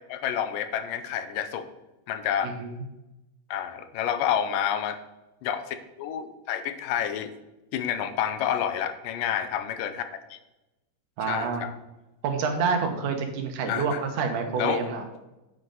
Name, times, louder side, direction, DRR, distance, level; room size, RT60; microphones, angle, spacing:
voice 1, 0.1-1.7 2.1-2.5 3.5-5.0 5.4-7.3 7.7-10.4 11.3-11.7 13.7-14.0 14.6-14.8, left 9 dB, 85° left, 10 dB, 2.4 m, -29 dB
voice 2, 2.4-2.8 11.2-11.7 12.2-15.0, right 5 dB, 70° right, 5 dB, 2.6 m, -28 dB
9.3 x 7.7 x 3.8 m, 0.98 s
omnidirectional pair, 3.9 m